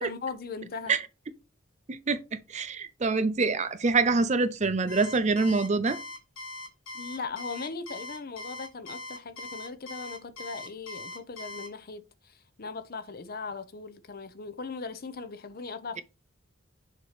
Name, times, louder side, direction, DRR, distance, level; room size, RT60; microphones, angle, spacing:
voice 1, 0.0-1.0 6.9-16.0, left 4 dB, 50° left, 0.6 m, -39 dB
voice 2, 1.9-2.2 2.5-6.0, right 3 dB, 35° right, 0.5 m, -25 dB
Alarm, 4.9-11.7, left 2 dB, 80° left, 1.6 m, -41 dB
6.7 x 3.0 x 4.9 m
head